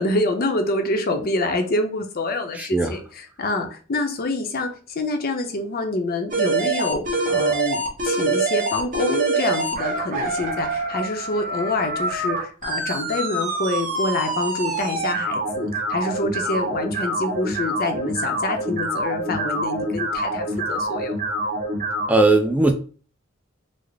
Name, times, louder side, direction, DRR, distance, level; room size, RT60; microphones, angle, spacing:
voice 1, 0.0-7.0 7.3-21.1, left 2 dB, 50° left, 5 dB, 0.6 m, -26 dB
voice 2, 2.6-2.9 22.1-22.7, right 2 dB, 5° right, 5 dB, 0.4 m, -18 dB
sound 1, 6.3-22.1, right 2 dB, 40° right, 1.0 m, -25 dB
3.8 x 2.0 x 3.3 m, 0.39 s
head